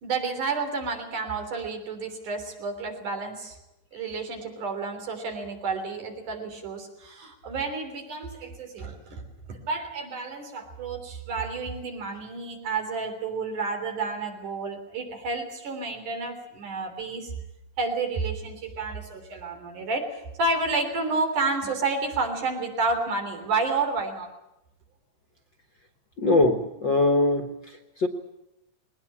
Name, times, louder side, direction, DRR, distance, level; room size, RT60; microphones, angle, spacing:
voice 1, 0.0-3.6 3.9-9.2 9.5-17.3 17.8-24.3, right 3 dB, 75° right, 4 dB, 5.0 m, -30 dB
voice 2, 26.2-28.1, left 2 dB, 45° left, 6 dB, 1.6 m, -22 dB
20.5 x 19.5 x 8.6 m, 0.90 s
omnidirectional pair, 3.6 m